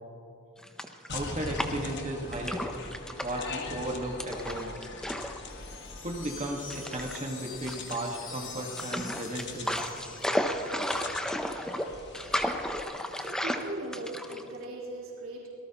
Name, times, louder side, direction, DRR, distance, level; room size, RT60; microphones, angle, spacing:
sound 1, 0.6-2.0 2.3-3.5 4.2-5.4 5.7-5.8 6.7-7.2 7.7-8.3 8.8-14.6, equal, 5° left, 0.7 m, -33 dB
sound 2, 1.1-12.8, left 3 dB, 55° left, 1.5 m, -43 dB
voice 1, 1.1-2.6 3.2-4.7 6.0-9.8, right 1 dB, 35° right, 0 dB, 1.7 m, -35 dB
sound 3, 5.5-10.9, left 5 dB, 70° left, 3.5 m, -45 dB
voice 2, 13.1-15.5, right 1 dB, 80° right, -5 dB, 3.6 m, -39 dB
26.0 x 18.5 x 3.0 m, 2.9 s
head